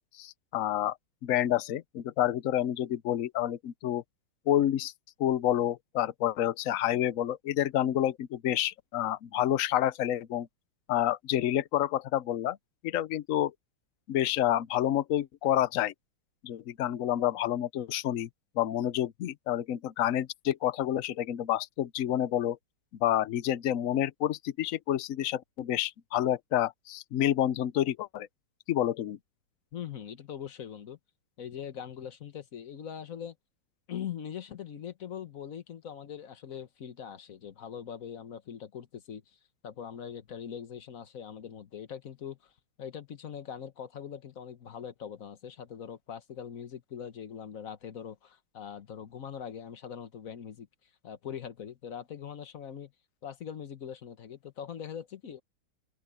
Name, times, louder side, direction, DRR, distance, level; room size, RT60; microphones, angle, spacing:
voice 1, 0.2-1.0 1.2-4.0 4.5-4.9 5.2-10.5 10.9-12.6 12.8-13.5 14.1-15.9 16.4-18.3 18.6-22.6 23.0-28.3 28.7-29.2, left 12 dB, 80° left, 0.7 m, -29 dB
voice 2, 29.7-31.0 31.4-33.3 33.9-39.2 39.6-42.5 42.8-50.7 51.0-52.9 53.2-55.4, left 8 dB, 45° left, 1.4 m, -42 dB
open air
omnidirectional pair, 2.2 m